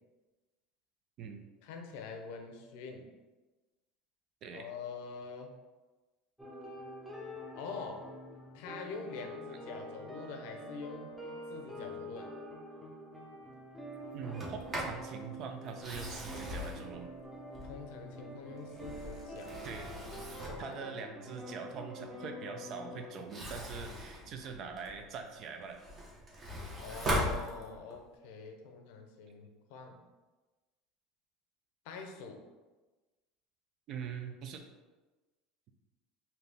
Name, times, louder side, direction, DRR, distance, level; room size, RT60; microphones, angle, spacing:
voice 1, 1.6-3.1 4.5-5.5 7.5-8.1 8.5-11.1 11.5-12.3 17.6-19.5 20.4-20.8 26.8-30.0 31.8-32.4, left 5 dB, 75° left, 3 dB, 0.6 m, -45 dB
sound 1, 6.4-23.2, equal, 5° right, 0.8 m, -46 dB
voice 2, 14.1-17.1 19.6-19.9 20.6-25.8 33.9-34.6, right 6 dB, 50° right, 5 dB, 0.5 m, -43 dB
Sliding door, 14.2-15.0 15.7-18.0 18.6-20.7 23.1-25.1 25.5-28.0, equal, 30° right, 1.1 m, -39 dB
4.0 x 2.9 x 3.4 m, 1.2 s
supercardioid pair, 125°, 0 cm